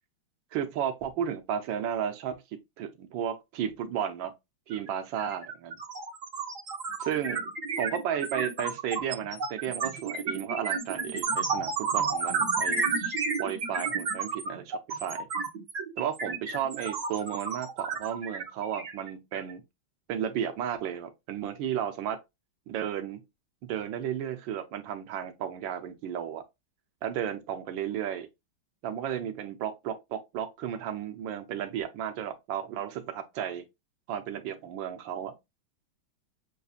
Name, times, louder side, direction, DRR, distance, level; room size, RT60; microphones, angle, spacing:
voice 1, 0.5-2.4 2.8-4.3 4.7-5.8 7.0-7.5 7.8-15.3 16.0-19.6 20.1-22.2 22.7-23.2 23.6-26.4 27.0-28.3 28.8-33.6 34.1-35.4, right 9 dB, 70° right, 1.4 m, -33 dB
sound 1, 4.7-4.9 5.2-19.5, right 5 dB, 45° right, 1.3 m, -31 dB
6.8 x 2.7 x 2.4 m
omnidirectional pair, 2.3 m